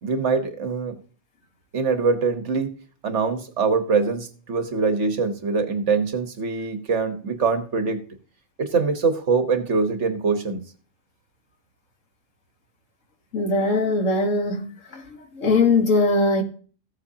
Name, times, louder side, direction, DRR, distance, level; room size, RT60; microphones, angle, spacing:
voice 1, 0.0-1.0 1.7-2.7 3.0-8.0 8.6-10.6, right 4 dB, 70° right, 1.5 m, -23 dB
voice 2, 13.3-14.7 14.9-16.4, left 3 dB, 90° left, 1.9 m, -21 dB
15.0 x 7.8 x 2.8 m
omnidirectional pair, 1.3 m